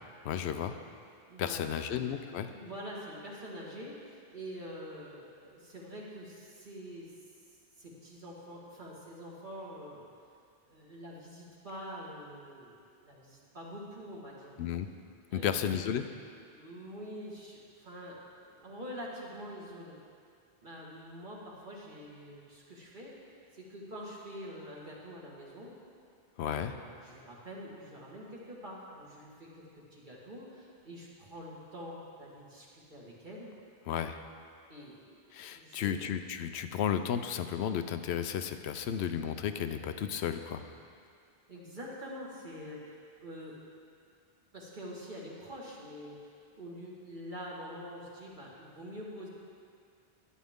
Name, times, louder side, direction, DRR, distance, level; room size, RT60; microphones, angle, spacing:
voice 1, 0.2-0.8 1.4-2.5 14.6-14.9 15.3-16.1 26.4-26.7 33.9-34.2 35.3-40.6, left 9 dB, 90° left, 9 dB, 0.9 m, -33 dB
voice 2, 1.3-1.9 2.5-7.1 7.8-10.1 10.7-14.6 15.3-15.9 16.5-20.0 20.6-25.7 26.4-29.6 29.9-33.5 34.7-35.2 35.5-36.1 41.5-43.6 44.5-49.3, equal, 50° right, -5 dB, 1.9 m, -46 dB
11.5 x 10.5 x 3.6 m, 2.3 s
omnidirectional pair, 1.1 m